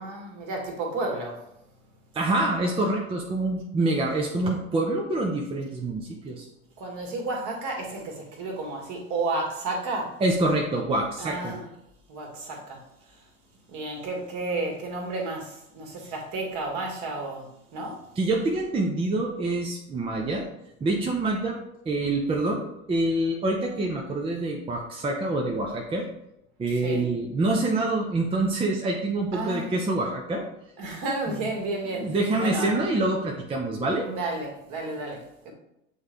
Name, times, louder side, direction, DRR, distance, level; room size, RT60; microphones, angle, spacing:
voice 1, 0.0-1.4 6.8-10.2 11.2-11.6 12.1-13.2 13.7-18.0 26.7-27.1 29.3-29.7 30.8-32.7 34.0-35.5, right 2 dB, 40° right, 1 dB, 1.8 m, -32 dB
voice 2, 2.1-6.5 10.2-11.6 18.2-20.5 20.8-21.6 21.9-26.0 26.6-30.4 31.3-31.4 32.0-34.0, right 2 dB, 15° right, 0 dB, 0.6 m, -26 dB
7.9 x 3.8 x 3.4 m, 0.83 s
figure-of-eight pair, 80°, 44 cm